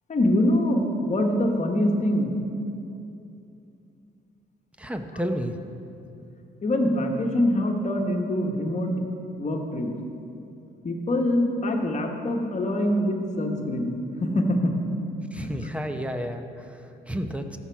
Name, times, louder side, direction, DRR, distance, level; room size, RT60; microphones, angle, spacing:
voice 1, 0.1-2.3 6.6-9.0 9.4-9.9 10.8-14.7 15.4-15.5, left 1 dB, 35° left, 2 dB, 1.3 m, -24 dB
voice 2, 4.8-5.6 15.3-17.6, equal, 5° right, 6 dB, 0.7 m, -31 dB
14.5 x 5.8 x 4.7 m, 2.7 s
cardioid pair, 90°, 20 cm